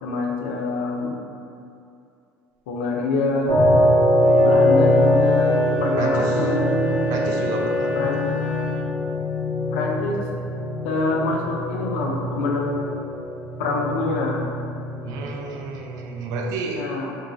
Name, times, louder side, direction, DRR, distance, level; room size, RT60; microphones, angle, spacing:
voice 1, 0.0-1.2 2.7-3.6 4.4-6.7 8.0-8.2 9.7-10.2 10.8-12.9 13.6-14.4 16.6-17.2, left 3 dB, 90° left, 0 dB, 0.4 m, -26 dB
sound 1, 3.5-16.5, left 1 dB, 50° left, 1.0 m, -22 dB
Wind instrument woodwind instrument, 4.1-9.0, right 4 dB, 15° right, 0.7 m, -34 dB
voice 2, 6.0-6.5 7.1-8.0 15.0-16.9, right 4 dB, 70° right, 2 dB, 0.4 m, -31 dB
sound 2, 6.4-9.5, right 3 dB, 25° left, 0.6 m, -33 dB
3.0 x 2.4 x 2.5 m, 2.5 s
supercardioid pair, 100°, 6 cm